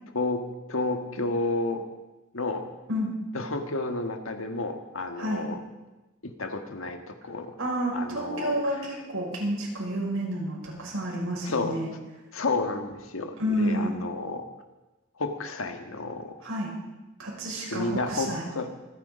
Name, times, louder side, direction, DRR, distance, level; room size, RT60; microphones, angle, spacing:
voice 1, 0.1-1.8 2.3-2.6 3.3-5.6 6.2-7.5 7.9-8.8 11.4-11.8 12.3-14.5 15.2-16.3 17.6-18.7, left 3 dB, 75° left, 6 dB, 1.7 m, -31 dB
voice 2, 7.6-11.9 13.4-14.0 16.4-16.7 17.2-18.5, equal, 80° right, -3 dB, 6.1 m, -30 dB
25.5 x 9.7 x 5.2 m, 1.1 s
head